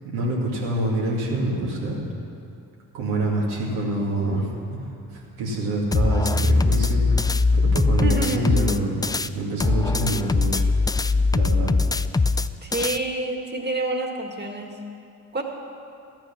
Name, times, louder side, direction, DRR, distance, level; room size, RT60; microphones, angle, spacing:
voice 1, 0.0-2.0 2.9-9.0 9.3-10.6 11.3-11.7, right 1 dB, 80° right, -3 dB, 2.6 m, -26 dB
sound 1, 5.9-9.3 9.6-13.0, left 3 dB, 10° left, 0.4 m, -21 dB
voice 2, 8.0-8.5 12.6-14.7 15.3-15.4, right 2 dB, 25° right, 2 dB, 2.1 m, -27 dB
13.5 x 9.1 x 6.1 m, 2.6 s
hypercardioid pair, 50°, 38 cm